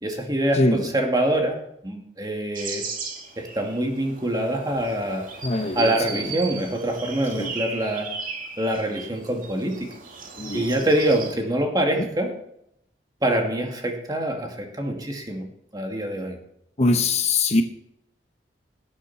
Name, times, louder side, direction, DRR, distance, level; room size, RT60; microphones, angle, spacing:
voice 1, 0.0-1.6 1.8-2.8 3.4-5.3 5.8-8.1 8.6-9.9 10.5-12.3 13.2-15.5 15.7-16.4, right 1 dB, 25° right, 3 dB, 2.3 m, -25 dB
voice 2, 0.5-0.9 5.4-6.3 7.3-7.5 10.4-10.7 12.0-12.1 16.8-17.6, left 2 dB, 40° left, 7 dB, 1.0 m, -23 dB
sound 1, 2.6-11.3, right 5 dB, 50° right, 2.3 m, -36 dB
18.5 x 8.3 x 4.2 m, 0.77 s
head